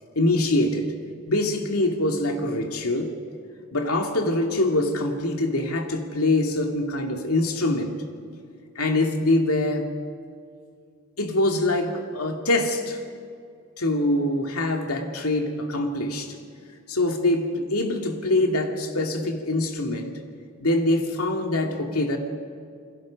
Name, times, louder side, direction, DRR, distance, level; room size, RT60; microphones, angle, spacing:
voice 1, 0.2-0.9 1.3-3.1 3.7-7.9 8.8-9.9 11.2-13.0 13.8-16.4 16.9-20.2 20.6-22.2, left 2 dB, 80° left, 3 dB, 2.3 m, -24 dB
28.5 x 22.0 x 5.2 m, 2.3 s
head